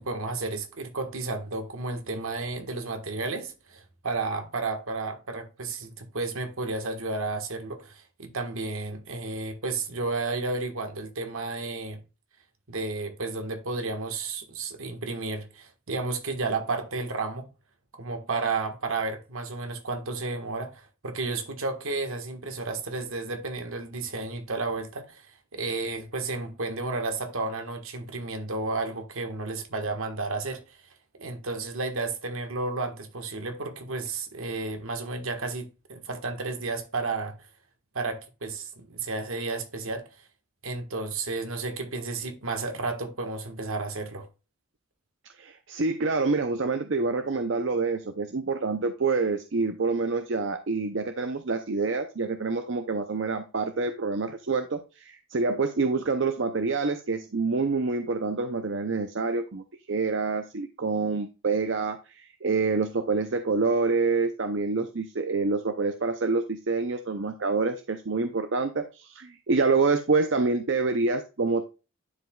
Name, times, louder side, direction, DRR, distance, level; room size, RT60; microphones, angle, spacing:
voice 1, 0.0-12.0 12.7-17.5 17.9-30.8 31.2-37.3 37.9-40.1 40.6-44.3, right 3 dB, 75° right, 1.5 m, -32 dB
voice 2, 45.4-71.6, right 4 dB, 60° right, 0.6 m, -27 dB
11.0 x 5.0 x 2.3 m
head